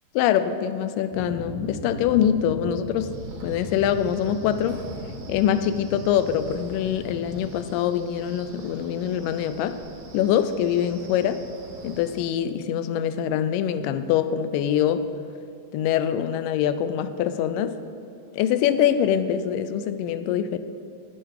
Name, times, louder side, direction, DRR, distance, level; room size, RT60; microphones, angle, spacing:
voice 1, 0.2-3.1 3.4-4.8 5.3-9.8 10.1-11.4 11.8-15.1 15.7-17.8 18.3-20.6, left 9 dB, 80° left, 11 dB, 2.1 m, -24 dB
sound 1, 1.1-7.5, equal, 65° left, 3.1 m, -38 dB
Wind, 3.0-12.2, right 3 dB, 80° right, 3.2 m, -44 dB
9.3 x 8.8 x 4.7 m, 2.7 s
omnidirectional pair, 4.1 m